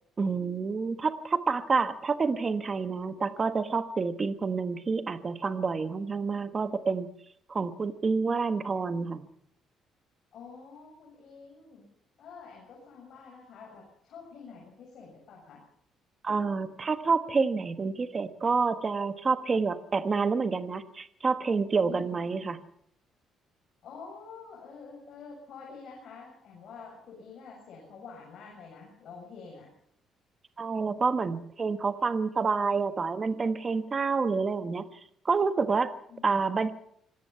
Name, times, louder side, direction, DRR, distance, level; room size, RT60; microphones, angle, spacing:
voice 1, 0.2-7.1 7.5-9.2 16.2-22.6 30.6-34.9 35.2-35.9 36.2-36.7, right 4 dB, 25° right, 10 dB, 1.3 m, -28 dB
voice 2, 10.3-11.9 12.2-15.6 21.8-22.2 23.8-29.7 36.1-36.5, left 5 dB, 50° left, -2 dB, 7.2 m, -47 dB
25.5 x 17.5 x 5.7 m, 0.68 s
cardioid pair, 165°, 0 cm